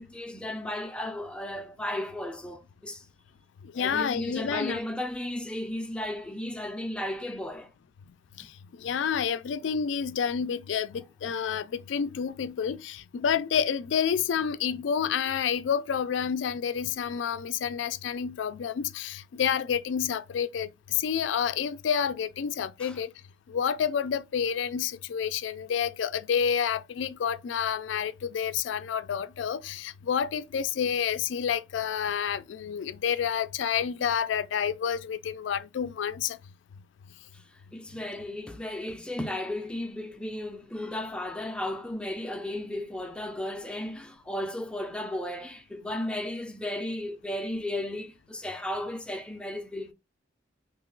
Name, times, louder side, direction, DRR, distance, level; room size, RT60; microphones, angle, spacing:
voice 1, 0.0-3.1 3.8-7.7 8.4-8.5 22.8-23.0 37.3-49.9, left 1 dB, 5° left, 0.4 m, -35 dB
voice 2, 3.7-4.8 8.4-8.5 8.8-23.1 23.5-36.4, left 7 dB, 85° left, 0.3 m, -29 dB
3.0 x 2.9 x 3.7 m
head